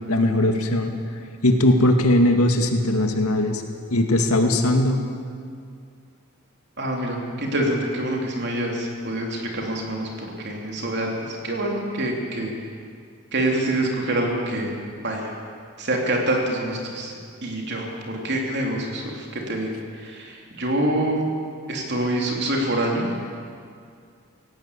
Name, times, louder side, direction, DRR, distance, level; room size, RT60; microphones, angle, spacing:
voice 1, 0.1-0.9 1.4-3.6 3.9-5.0, left 1 dB, 80° left, 4 dB, 2.1 m, -19 dB
voice 2, 6.8-12.5 13.3-14.7 15.0-15.3 15.8-21.2 21.7-23.2, right 1 dB, 50° right, 0 dB, 3.6 m, -26 dB
17.5 x 17.5 x 8.5 m, 2.2 s
head